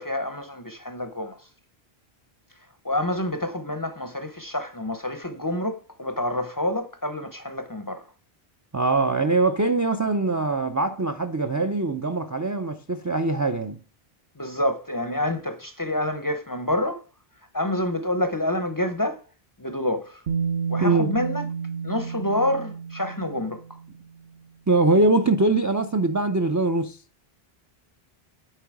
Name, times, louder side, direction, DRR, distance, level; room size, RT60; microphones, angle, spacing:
voice 1, 0.0-1.5 2.8-8.1 14.4-17.0 17.5-19.2 19.6-20.2 20.7-21.5 21.8-23.6, left 1 dB, 25° left, 0.5 m, -28 dB
voice 2, 8.7-13.8 20.8-21.1 24.7-27.0, right 2 dB, 30° right, 0.3 m, -22 dB
Bass guitar, 20.3-24.2 25.3-25.4, right 6 dB, 65° right, 1.0 m, -30 dB
9.1 x 3.9 x 4.7 m
omnidirectional pair, 1.0 m